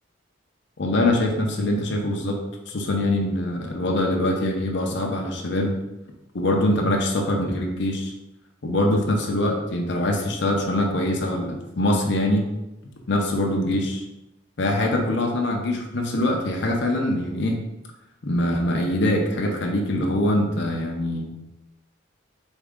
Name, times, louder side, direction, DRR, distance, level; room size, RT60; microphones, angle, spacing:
voice 1, 0.8-2.4 2.7-5.8 6.3-8.1 8.6-12.4 13.1-14.0 14.6-17.6 18.2-21.3, left 1 dB, 60° left, 1 dB, 0.7 m, -23 dB
4.1 x 3.6 x 3.6 m, 0.93 s
head